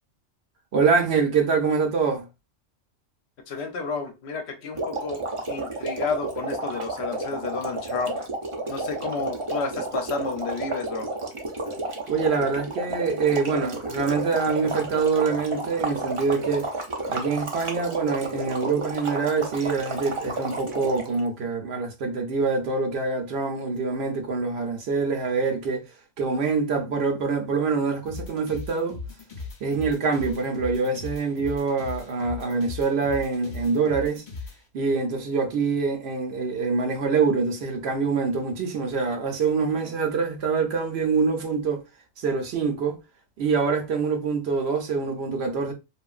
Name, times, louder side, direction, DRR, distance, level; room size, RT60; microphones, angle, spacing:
voice 1, 0.7-2.3 12.1-16.7 17.1-25.9 26.2-29.0 29.6-34.2 34.7-41.8 42.2-43.0 43.4-45.7, right 5 dB, 65° right, 0.8 m, -25 dB
voice 2, 3.5-5.2 5.5-8.2 8.7-11.1, left 4 dB, 70° left, 0.9 m, -31 dB
sound 1, 4.7-21.2, right 2 dB, 40° right, 0.5 m, -31 dB
sound 2, 28.1-34.6, left 4 dB, 45° left, 0.7 m, -38 dB
2.9 x 2.4 x 2.3 m
omnidirectional pair, 1.2 m